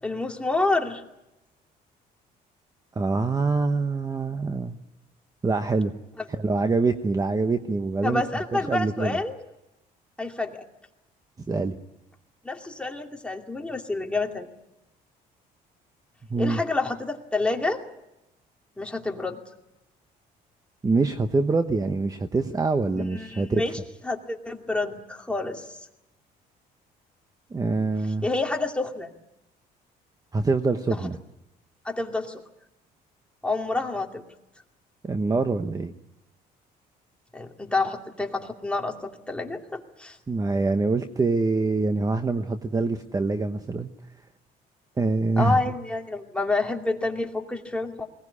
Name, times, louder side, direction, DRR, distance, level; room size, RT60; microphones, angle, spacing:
voice 1, 0.0-1.0 6.2-6.3 8.0-9.4 10.2-10.7 12.4-14.5 16.4-17.8 18.8-19.4 23.0-23.7 24.0-25.8 28.2-29.1 30.9-31.0 31.8-32.4 33.4-34.2 37.3-40.2 45.4-48.1, left 2 dB, 5° left, 2 dB, 2.5 m, -28 dB
voice 2, 2.9-4.8 5.4-5.9 6.3-8.2 8.5-9.2 11.5-11.8 16.3-16.6 20.8-23.6 27.5-28.3 30.3-31.2 35.0-35.9 40.3-43.9 45.0-45.6, right 3 dB, 20° right, 8 dB, 1.0 m, -25 dB
21.5 x 18.5 x 9.8 m, 0.91 s
cardioid pair, 110°, 17 cm